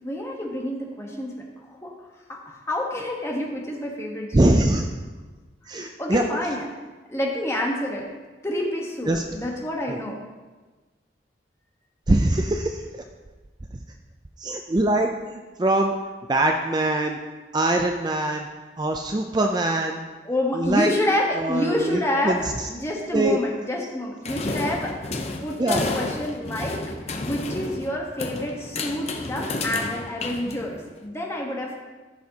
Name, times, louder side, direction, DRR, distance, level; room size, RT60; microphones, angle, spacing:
voice 1, 0.0-1.9 2.3-4.3 6.0-6.7 7.1-8.1 8.4-10.2 20.2-26.8 27.2-31.8, left 1 dB, 15° left, -1 dB, 1.2 m, -28 dB
voice 2, 4.3-4.9 5.7-6.2 9.1-9.2 9.9-10.0 12.1-13.0 13.7-13.8 14.4-15.1 15.6-15.9 16.3-17.2 17.5-18.5 18.8-20.1 20.5-20.9 21.3-22.7 23.1-23.4 25.6-25.8, right 1 dB, 25° right, 4 dB, 0.4 m, -22 dB
sound 1, 24.2-31.0, left 2 dB, 35° left, 0.7 m, -31 dB
14.5 x 6.4 x 2.8 m, 1.3 s
head